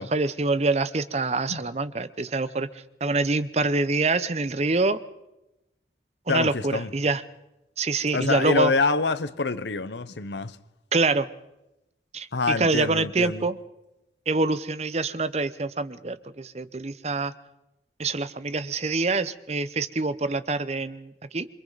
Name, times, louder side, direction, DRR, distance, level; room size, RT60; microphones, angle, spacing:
voice 1, 0.0-2.7 3.0-5.0 6.3-7.2 7.8-8.7 10.9-11.3 12.1-13.6 14.3-17.3 18.0-21.5, right 3 dB, 35° right, 0.7 m, -25 dB
voice 2, 6.3-6.9 8.1-10.6 12.3-13.5, left 3 dB, 80° left, 0.9 m, -26 dB
27.5 x 24.0 x 4.0 m
head